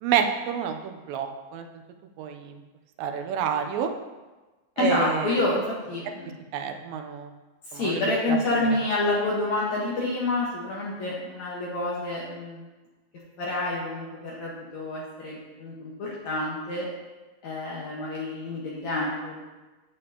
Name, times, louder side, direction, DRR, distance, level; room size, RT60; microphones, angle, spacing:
voice 1, 0.0-1.7 2.2-2.6 3.0-3.9 4.8-5.4 6.5-7.3 7.7-8.0 8.3-8.4, right 8 dB, 90° right, 6 dB, 2.9 m, -28 dB
voice 2, 4.8-6.3 7.7-12.6 13.4-16.9 17.4-19.4, left 2 dB, 60° left, -5 dB, 1.9 m, -28 dB
11.5 x 8.7 x 2.9 m, 1.2 s
omnidirectional pair, 4.8 m